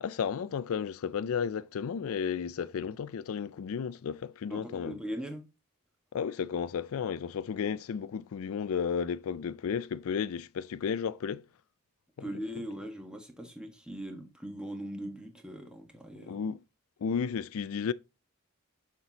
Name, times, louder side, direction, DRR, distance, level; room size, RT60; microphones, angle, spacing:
voice 1, 0.0-5.0 6.1-11.4 16.2-16.6 17.0-17.9, left 6 dB, 70° left, 0.4 m, -33 dB
voice 2, 4.5-5.5 12.2-16.4, equal, 5° right, 1.3 m, -40 dB
6.9 x 5.9 x 3.9 m
head